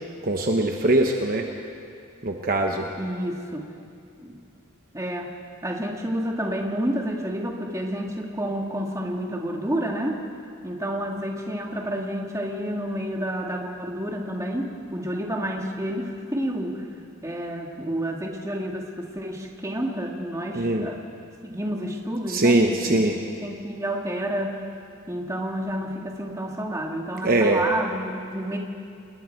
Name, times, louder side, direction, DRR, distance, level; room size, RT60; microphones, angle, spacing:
voice 1, 0.2-1.5 2.2-2.9 20.6-20.9 22.3-23.1 27.2-27.6, right 2 dB, 40° right, 2 dB, 1.0 m, -21 dB
voice 2, 3.0-3.7 4.2-4.4 4.9-5.3 5.6-10.2 10.6-16.9 17.2-21.0 21.4-23.1 23.4-24.7 25.1-28.6, equal, 15° right, 0 dB, 1.9 m, -29 dB
28.0 x 20.5 x 4.5 m, 2.5 s
head